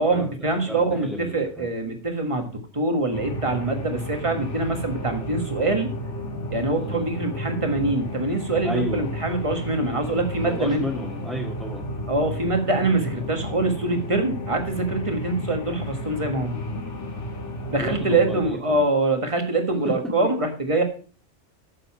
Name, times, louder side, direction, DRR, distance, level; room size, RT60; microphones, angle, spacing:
voice 1, 0.0-5.9 6.5-10.8 12.1-16.6 17.7-20.8, right 2 dB, 25° right, 5 dB, 1.7 m, -24 dB
voice 2, 0.7-1.7 6.7-7.1 8.6-9.1 10.4-11.8 17.8-18.8, equal, ahead, -3 dB, 1.8 m, -32 dB
sound 1, 3.1-18.5, equal, 80° left, 2.1 m, -33 dB
8.7 x 6.9 x 5.7 m, 0.40 s
omnidirectional pair, 1.2 m